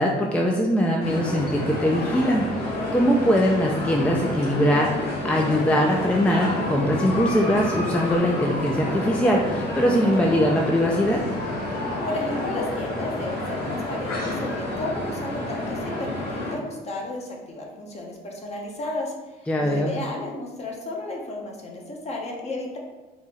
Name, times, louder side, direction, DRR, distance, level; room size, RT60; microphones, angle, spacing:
voice 1, 0.0-4.9 5.2-11.2 19.5-20.0, equal, 5° left, -1 dB, 0.4 m, -22 dB
sound 1, 1.0-16.6, left 1 dB, 70° left, 1.4 m, -29 dB
voice 2, 12.0-22.8, left 2 dB, 40° left, -1 dB, 1.0 m, -33 dB
4.1 x 3.0 x 3.7 m, 1.2 s
cardioid pair, 110°, 17 cm